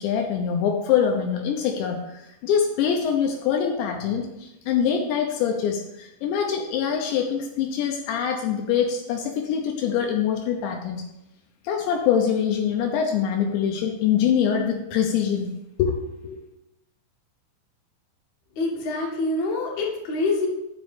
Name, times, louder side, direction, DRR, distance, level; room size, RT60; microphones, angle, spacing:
voice 1, 0.0-11.0 11.6-16.0 16.2-16.4, left 8 dB, 80° left, 2 dB, 3.0 m, -24 dB
voice 2, 18.6-20.5, left 3 dB, 50° left, -2 dB, 2.3 m, -25 dB
7.2 x 6.0 x 6.5 m, 0.89 s
omnidirectional pair, 5.4 m